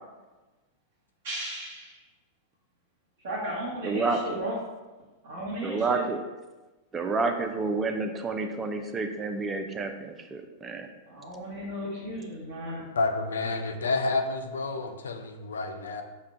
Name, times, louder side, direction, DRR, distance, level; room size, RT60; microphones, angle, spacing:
voice 1, 1.2-2.0 3.2-4.6 5.2-6.0 11.1-12.9, right 1 dB, 65° right, -7 dB, 0.9 m, -35 dB
voice 2, 3.8-4.4 5.6-6.2 6.9-10.9, right 3 dB, 20° right, 6 dB, 0.4 m, -29 dB
voice 3, 12.9-16.0, left 3 dB, 85° left, 6 dB, 0.4 m, -29 dB
5.4 x 2.2 x 2.5 m, 1.2 s
hypercardioid pair, 105°, 0 cm